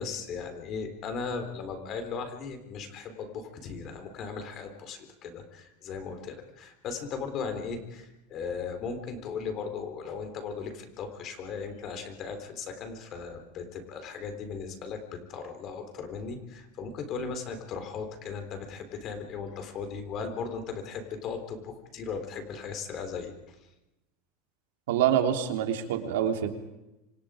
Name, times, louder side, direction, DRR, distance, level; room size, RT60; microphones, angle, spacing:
voice 1, 0.0-23.3, left 5 dB, 35° left, 7 dB, 3.9 m, -37 dB
voice 2, 24.9-26.5, right 9 dB, 80° right, 5 dB, 3.3 m, -26 dB
27.5 x 26.0 x 5.1 m, 0.95 s
supercardioid pair, 165°, 0 cm